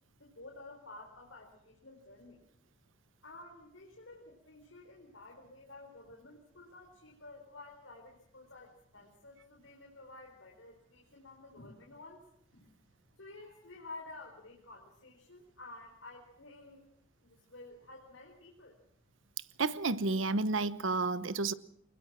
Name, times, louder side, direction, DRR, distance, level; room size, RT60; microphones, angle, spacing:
voice 1, 0.2-2.5 3.2-12.2 12.5-12.8 13.2-16.9 17.2-18.8, left 2 dB, 90° left, 4.4 m, -52 dB
voice 2, 19.6-21.5, right 3 dB, 85° right, 1.0 m, -31 dB
23.5 x 20.5 x 6.1 m
head